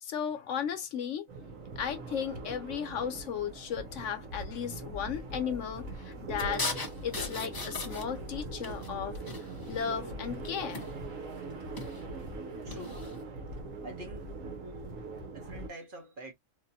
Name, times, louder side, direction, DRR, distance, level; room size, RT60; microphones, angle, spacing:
voice 1, 0.0-1.2 1.8-6.8 7.0-9.2 9.7-10.9, left 8 dB, 65° left, 1.0 m, -35 dB
sound 1, 1.3-15.7, right 2 dB, 70° right, 1.4 m, -41 dB
sound 2, 6.4-8.3 8.6-9.9 10.7-11.2 11.6-12.0 12.7-13.2, left 3 dB, 25° left, 0.5 m, -38 dB
voice 2, 12.6-13.1 13.8-14.6 15.3-16.3, right 2 dB, 45° right, 1.0 m, -46 dB
3.5 x 2.5 x 2.6 m
omnidirectional pair, 1.4 m